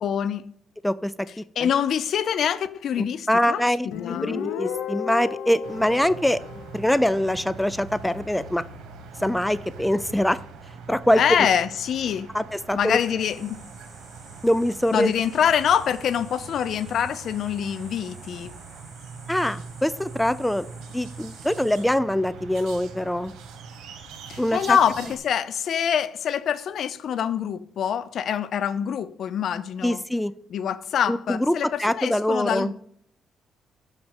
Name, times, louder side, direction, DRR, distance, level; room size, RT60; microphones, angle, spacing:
voice 1, 0.0-0.5 1.6-3.6 4.0-4.4 11.2-12.3 12.7-13.6 14.9-18.5 24.3-30.0 30.5-32.7, left 8 dB, 65° left, 0.6 m, -25 dB
voice 2, 0.8-1.7 3.3-6.4 6.7-8.6 9.2-10.4 10.9-11.2 12.3-13.0 14.4-15.1 19.3-20.7 20.9-23.3 24.4-24.8 29.8-30.3 31.1-32.7, left 1 dB, 5° left, 0.4 m, -24 dB
Guitar, 3.9-7.4, left 8 dB, 85° left, 0.9 m, -33 dB
sound 1, 5.6-25.2, right 5 dB, 85° right, 1.8 m, -42 dB
sound 2, 13.2-21.8, right 1 dB, 20° right, 3.2 m, -51 dB
6.6 x 5.8 x 7.3 m
cardioid pair, 90°, 0 cm